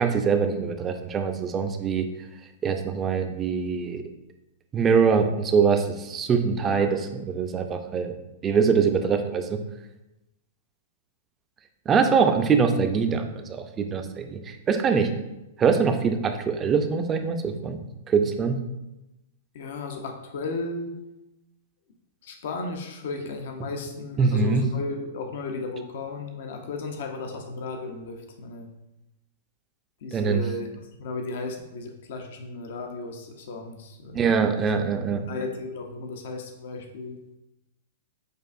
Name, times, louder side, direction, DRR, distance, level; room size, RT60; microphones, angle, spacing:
voice 1, 0.0-2.1 2.6-4.0 4.7-7.0 7.3-8.1 8.4-9.6 11.9-15.1 15.6-17.8 18.1-18.6 24.2-24.7 30.1-30.4 34.1-35.3, right 5 dB, 25° right, 6 dB, 0.4 m, -23 dB
voice 2, 6.6-6.9 19.5-20.9 22.2-28.7 30.0-30.7 31.0-34.3 34.6-34.7 35.1-37.2, left 3 dB, 65° left, 4 dB, 0.6 m, -35 dB
6.3 x 2.4 x 2.5 m, 0.96 s
hypercardioid pair, 115°, 0 cm